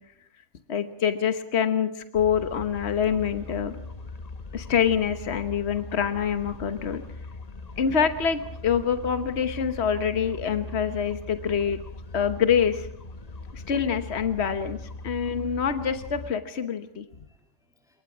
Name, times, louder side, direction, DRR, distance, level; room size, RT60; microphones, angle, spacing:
voice 1, 0.7-3.8 4.5-7.0 7.8-11.8 12.1-12.9 13.5-17.0, left 7 dB, 65° left, 9 dB, 1.4 m, -26 dB
sound 1, 2.1-16.3, left 3 dB, 35° left, 1.1 m, -40 dB
voice 2, 6.9-7.8 13.2-13.7 17.1-18.0, left 1 dB, 5° right, 2 dB, 2.9 m, -70 dB
27.5 x 22.5 x 6.1 m, 0.70 s
omnidirectional pair, 1.2 m